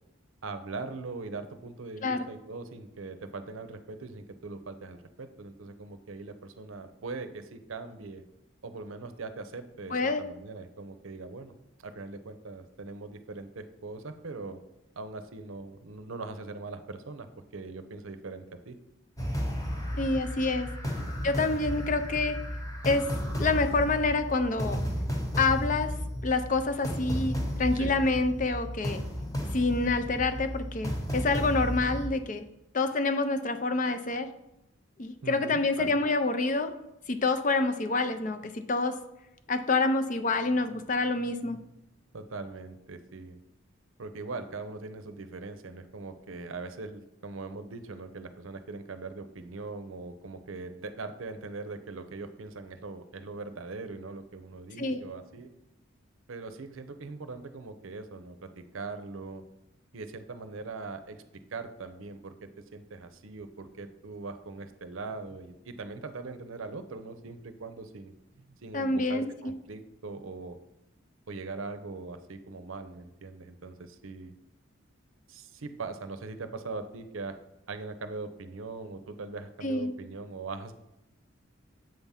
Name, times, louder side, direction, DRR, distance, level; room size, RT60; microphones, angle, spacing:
voice 1, 0.4-8.2 8.6-11.5 11.8-14.6 15.0-17.3 17.5-18.8 20.8-21.1 27.8-28.0 35.2-36.0 42.1-43.4 44.0-55.5 56.3-59.4 59.9-61.2 61.5-70.6 71.3-74.3 75.3-77.3 77.7-80.7, right 3 dB, 80° right, 9 dB, 0.6 m, -41 dB
voice 2, 9.9-10.2 20.0-20.7 21.2-22.4 22.8-23.1 23.4-24.8 25.4-25.9 26.2-29.0 29.5-32.4 32.7-34.3 35.0-36.7 37.1-39.0 39.5-41.6 54.8-55.0 68.7-69.5 79.6-80.0, left 3 dB, 40° left, 9 dB, 0.5 m, -27 dB
sound 1, 19.2-32.1, equal, 15° left, 1.0 m, -33 dB
7.6 x 3.6 x 5.6 m, 0.90 s
head